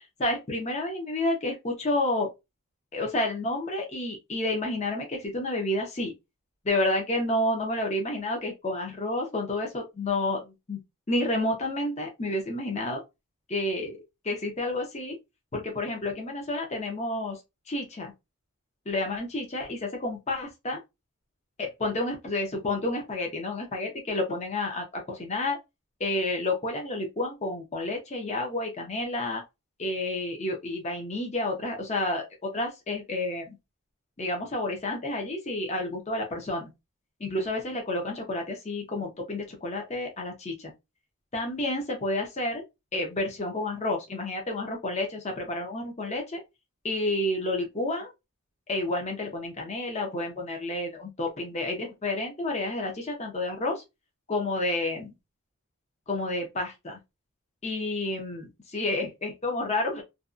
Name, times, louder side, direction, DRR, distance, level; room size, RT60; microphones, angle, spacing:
voice 1, 0.0-2.3 2.9-6.1 6.6-10.8 11.1-13.0 13.5-15.2 15.5-17.4 17.7-18.1 18.9-20.8 21.6-25.6 26.0-29.4 29.8-33.6 34.2-36.7 37.2-40.7 41.3-42.6 42.9-46.4 46.8-48.1 48.7-53.8 54.3-55.1 56.1-57.0 57.6-60.0, left 2 dB, 30° left, 0.7 m, -30 dB
2.7 x 2.2 x 2.4 m
head